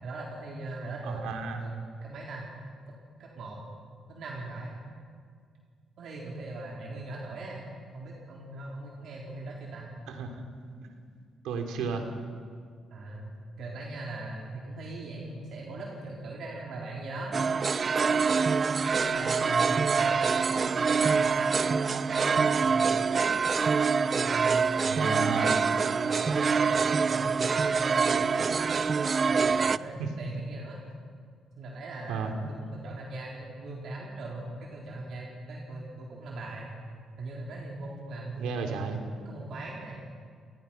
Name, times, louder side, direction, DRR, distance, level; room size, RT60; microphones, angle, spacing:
voice 1, 0.0-2.4 2.9-3.0 3.2-3.6 4.1-4.8 6.0-7.6 7.9-9.9 12.9-13.3 13.6-17.4 17.9-23.3 24.0-28.6 29.2-30.8 31.6-36.7 37.2-40.0, right 2 dB, 65° right, -3 dB, 4.0 m, -40 dB
voice 2, 1.1-1.6 10.1-10.4 10.8-10.9 11.4-12.1 24.8-25.6 30.0-30.1 32.1-32.3 38.4-39.0, right 5 dB, 90° right, 4 dB, 3.0 m, -33 dB
sound 1, 17.3-29.8, right 5 dB, 40° right, 0.5 m, -25 dB
27.0 x 19.5 x 6.0 m, 2.1 s
cardioid pair, 90°, 0 cm